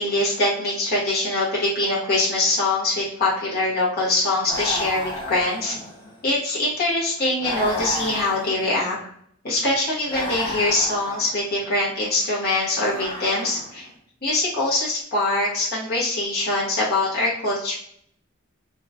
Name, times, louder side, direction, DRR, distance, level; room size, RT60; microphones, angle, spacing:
voice 1, 0.0-5.8 6.2-9.0 9.4-13.9 14.2-17.8, left 2 dB, 50° left, -6 dB, 1.1 m, -23 dB
sound 1, 4.4-6.2 7.4-9.0 10.1-11.4 12.8-13.9, left 1 dB, 20° left, 0.9 m, -33 dB
3.6 x 3.1 x 2.4 m, 0.66 s
head